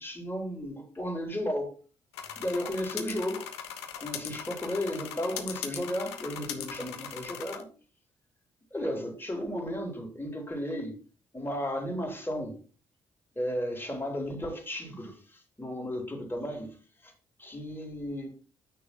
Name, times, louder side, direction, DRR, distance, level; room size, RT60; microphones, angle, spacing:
voice 1, 0.0-1.7 2.4-3.5 4.0-7.7 8.7-10.9 11.3-12.6 13.4-15.1 15.6-16.7 17.0-17.1 17.4-18.3, equal, 15° left, 3.7 m, -34 dB
sound 1, 2.1-7.6, left 9 dB, 85° left, 0.8 m, -40 dB
8.6 x 6.4 x 4.3 m
hypercardioid pair, 40°, 14 cm